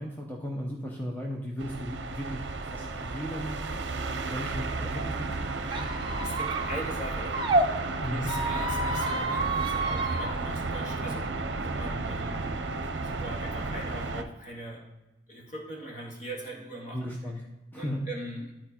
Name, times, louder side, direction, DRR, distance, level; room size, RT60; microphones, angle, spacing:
voice 1, 0.0-3.6 4.1-5.4 8.0-8.3 16.9-17.4 17.7-18.0, equal, 10° left, -1 dB, 0.8 m, -36 dB
sound 1, 1.6-14.2, right 3 dB, 65° right, 0.7 m, -33 dB
Squeak, 5.7-7.7 8.2-10.3, right 2 dB, 25° right, 0.7 m, -29 dB
voice 2, 5.8-7.4 7.7-11.3 11.6-12.5 13.0-14.9 15.3-17.1 17.7-18.5, right 1 dB, 40° left, -1 dB, 1.9 m, -41 dB
12.0 x 4.3 x 4.4 m, 1.1 s
head